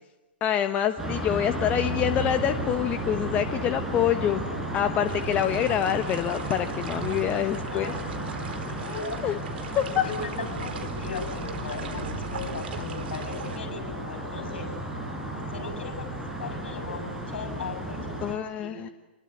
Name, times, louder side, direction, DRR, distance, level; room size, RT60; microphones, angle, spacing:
voice 1, 0.4-4.4 4.7-8.0 9.2-9.4 9.8-10.1 18.2-18.9, left 10 dB, 25° left, 9 dB, 1.2 m, -26 dB
sound 1, 1.0-18.3, right 1 dB, 10° right, 5.4 m, -33 dB
sound 2, 5.1-13.6, right 7 dB, 60° right, 3.7 m, -42 dB
voice 2, 7.5-9.2 9.9-14.7 15.3-16.1 16.4-18.9, left 5 dB, 65° left, 8 dB, 7.5 m, -38 dB
27.5 x 21.5 x 9.5 m, 1.0 s
hypercardioid pair, 120°, 6 cm